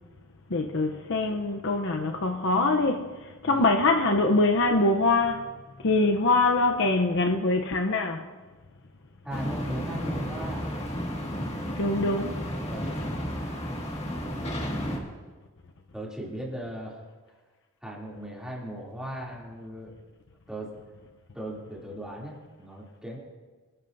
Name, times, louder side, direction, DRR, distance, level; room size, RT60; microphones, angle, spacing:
voice 1, 0.5-3.1 3.4-5.5 5.8-8.3 11.8-12.4, left 2 dB, 55° left, 0.7 m, -24 dB
voice 2, 9.2-10.7 12.6-12.9 15.9-17.0 17.8-19.9 20.5-20.7 21.3-23.2, right 1 dB, 5° right, 2.8 m, -38 dB
sound 1, 9.3-15.0, equal, 30° left, 1.9 m, -32 dB
25.5 x 11.0 x 2.6 m
head